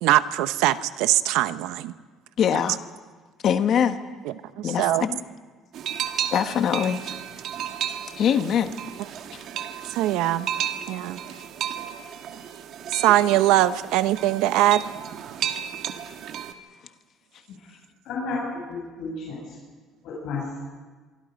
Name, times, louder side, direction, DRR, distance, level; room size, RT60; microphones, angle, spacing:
voice 1, 0.0-1.9 4.6-5.1 9.9-10.5 10.9-11.2 12.9-14.8, right 14 dB, 90° right, 13 dB, 0.9 m, -21 dB
voice 2, 2.4-2.8 3.4-4.0 4.6-5.2 6.3-7.0 8.2-8.7 9.3-9.4, left 8 dB, 45° left, 8 dB, 1.4 m, -23 dB
sound 1, 5.7-16.5, right 9 dB, 55° right, 1.5 m, -33 dB
voice 3, 18.0-19.6 20.0-20.6, left 3 dB, 60° left, -4 dB, 7.5 m, -32 dB
24.5 x 24.5 x 5.3 m, 1.4 s
cardioid pair, 160°, 0 cm